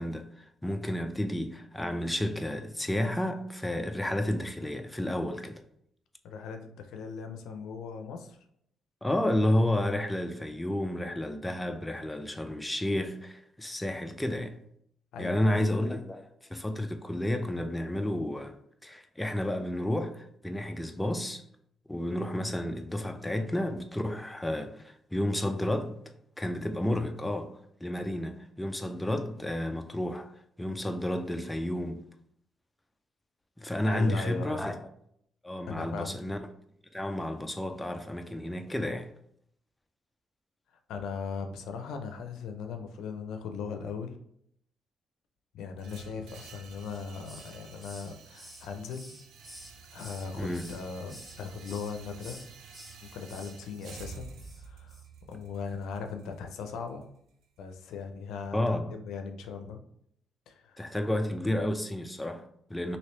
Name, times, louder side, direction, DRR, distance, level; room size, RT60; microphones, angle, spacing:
voice 1, 0.0-5.6 9.0-14.6 15.2-18.6 18.8-21.4 21.9-26.0 26.4-30.3 30.6-32.0 33.6-34.9 35.4-36.4 36.9-39.1 50.4-50.7 58.5-58.9 60.8-63.0, left 1 dB, 10° left, 0.3 m, -31 dB
voice 2, 6.2-8.4 15.1-15.6 33.6-34.6 35.7-36.2 40.9-44.2 45.5-49.1 49.9-52.4 53.0-54.3 54.6-55.0 55.3-57.0 57.6-59.8 60.5-60.9, left 5 dB, 85° left, 0.4 m, -39 dB
sound 1, 45.8-57.8, right 5 dB, 80° right, 0.4 m, -50 dB
Hiss, 46.8-47.6 47.8-50.3 50.5-51.4 51.6-51.9 52.2-53.0 53.3-53.5 53.8-54.0 54.4-54.6 54.9-55.0, equal, 10° right, 0.9 m, -50 dB
3.1 x 2.7 x 3.1 m
cardioid pair, 90°, 0 cm